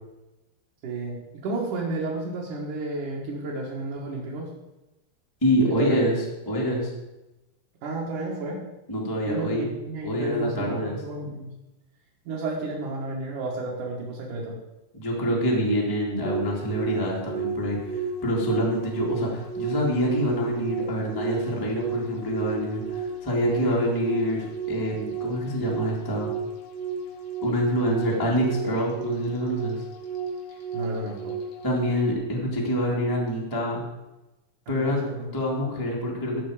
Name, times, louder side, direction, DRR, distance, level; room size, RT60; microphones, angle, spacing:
voice 1, 0.8-1.2 1.4-4.5 5.8-6.1 7.8-8.6 9.2-11.5 12.3-14.6 23.6-23.8 30.7-31.4 34.7-35.3, right 2 dB, 55° right, -5 dB, 2.5 m, -32 dB
voice 2, 5.4-6.9 8.9-9.7 10.0-11.0 14.9-26.3 27.4-29.8 31.6-33.8 34.7-35.0 35.3-36.4, equal, 25° left, -3 dB, 0.4 m, -26 dB
sound 1, 16.2-32.1, right 4 dB, 75° left, 1.6 m, -33 dB
14.5 x 6.1 x 4.9 m, 1.0 s
omnidirectional pair, 5.1 m